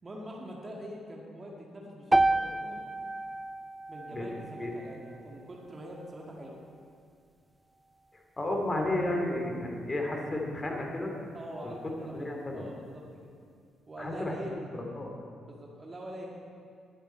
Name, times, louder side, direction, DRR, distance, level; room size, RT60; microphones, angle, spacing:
voice 1, 0.0-2.9 3.9-6.6 11.3-13.0 13.9-14.6 15.4-16.3, equal, 30° right, -2 dB, 1.9 m, -44 dB
sound 1, 2.1-6.3, right 2 dB, 15° right, 0.4 m, -31 dB
voice 2, 8.4-11.1 11.6-11.7 12.1-12.7 14.0-14.4 14.7-15.1, left 1 dB, 25° left, 1 dB, 2.7 m, -32 dB
20.0 x 8.2 x 4.5 m, 2.3 s
figure-of-eight pair, 40°, 0 cm